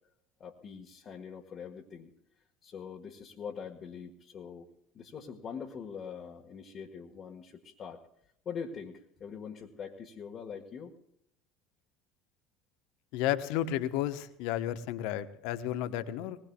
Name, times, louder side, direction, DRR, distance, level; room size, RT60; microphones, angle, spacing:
voice 1, 0.4-2.1 2.6-4.7 4.9-8.0 8.5-10.9, left 6 dB, 40° left, 0 dB, 1.6 m, -43 dB
voice 2, 13.1-16.4, left 12 dB, 65° left, 11 dB, 1.1 m, -32 dB
21.0 x 20.5 x 2.4 m, 0.74 s
figure-of-eight pair, 65°, 0 cm